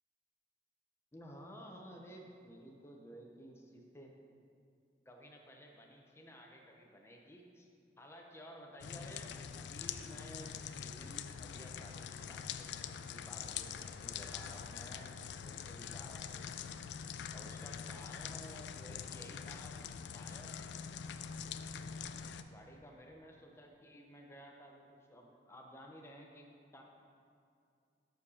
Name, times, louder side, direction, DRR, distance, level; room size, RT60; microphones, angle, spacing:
voice 1, 1.1-4.1 5.1-7.7 8.0-10.5 10.8-15.1 15.4-16.9 17.3-19.8 20.1-20.6 22.4-26.8, equal, 15° left, 0 dB, 0.8 m, -54 dB
sound 1, 8.8-22.4, left 7 dB, 65° left, 0.3 m, -44 dB
6.6 x 5.0 x 5.5 m, 2.4 s
head